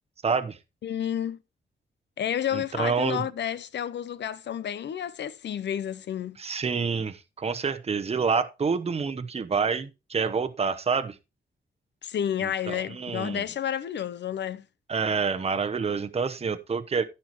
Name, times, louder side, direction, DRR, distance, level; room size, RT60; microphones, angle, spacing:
voice 1, 0.2-0.6 2.5-3.2 6.4-11.1 12.4-13.4 14.9-17.0, right 5 dB, 30° right, 0.9 m, -28 dB
voice 2, 0.8-1.4 2.2-6.4 12.0-14.7, left 9 dB, 60° left, 0.7 m, -30 dB
15.0 x 5.6 x 3.0 m
wide cardioid pair, 135°, 20 cm